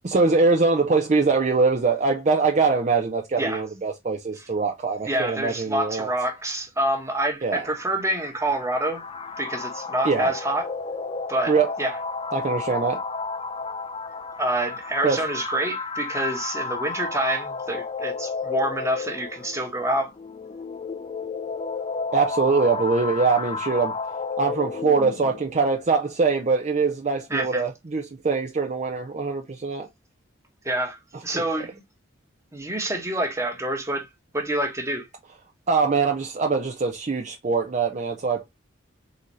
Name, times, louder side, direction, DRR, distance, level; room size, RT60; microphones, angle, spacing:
voice 1, 0.0-6.1 7.4-7.7 10.0-10.3 11.5-11.7 12.3-13.0 15.0-15.2 22.1-24.0 24.4-29.9 31.3-31.4 35.7-38.5, right 4 dB, 35° right, 0.5 m, -23 dB
voice 2, 5.0-9.0 9.4-10.7 11.3-11.5 11.8-12.0 14.4-20.1 27.3-27.6 30.6-31.8 32.5-35.1, right 1 dB, 15° right, 1.1 m, -27 dB
sound 1, 7.6-25.5, left 4 dB, 30° left, 0.5 m, -32 dB
4.0 x 4.0 x 3.1 m
head